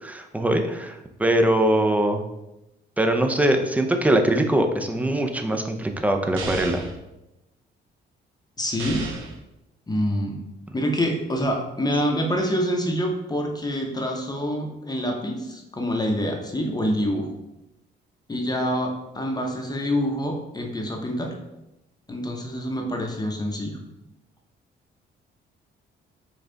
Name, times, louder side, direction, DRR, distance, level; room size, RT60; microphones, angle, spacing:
voice 1, 0.0-2.2 3.0-6.8, right 1 dB, 5° right, 5 dB, 0.5 m, -22 dB
sound 1, 6.4-7.0 8.8-9.4, right 4 dB, 80° right, 0.7 m, -33 dB
voice 2, 8.6-9.1 9.9-10.4 10.7-17.3 18.3-21.3 22.1-23.7, equal, 20° left, 1 dB, 0.8 m, -26 dB
5.4 x 2.4 x 3.9 m, 0.92 s
cardioid pair, 90°, 20 cm